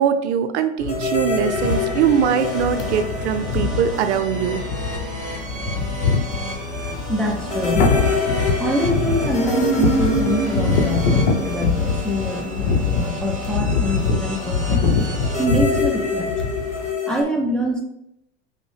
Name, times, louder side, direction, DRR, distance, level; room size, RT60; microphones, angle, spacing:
voice 1, 0.0-4.6, right 8 dB, 65° right, 8 dB, 0.5 m, -21 dB
sound 1, 0.8-16.9, left 4 dB, 65° left, 0.8 m, -24 dB
sound 2, 0.9-4.6 4.9-5.0 7.5-12.9 15.2-17.2, left 1 dB, 20° left, 0.9 m, -26 dB
sound 3, 1.6-15.4, right 2 dB, 20° right, 1.0 m, -33 dB
voice 2, 7.1-7.9 8.6-15.1 15.4-16.3 17.1-17.8, equal, ahead, 0 dB, 0.5 m, -25 dB
5.0 x 2.1 x 3.2 m, 0.80 s
hypercardioid pair, 85°, 36 cm